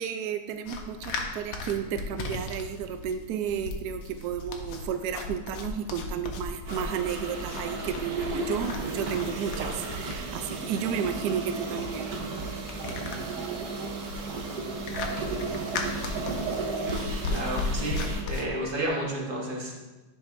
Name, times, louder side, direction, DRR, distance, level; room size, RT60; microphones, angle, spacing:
voice 1, 0.0-12.1, right 8 dB, 90° right, 7 dB, 0.8 m, -32 dB
sound 1, 0.7-18.5, left 3 dB, 80° left, 1.6 m, -36 dB
sound 2, 6.7-18.2, right 3 dB, 60° right, 1.2 m, -34 dB
voice 2, 17.3-19.8, right 1 dB, 30° right, -3 dB, 1.1 m, -31 dB
10.0 x 5.5 x 2.6 m, 1.1 s
omnidirectional pair, 2.3 m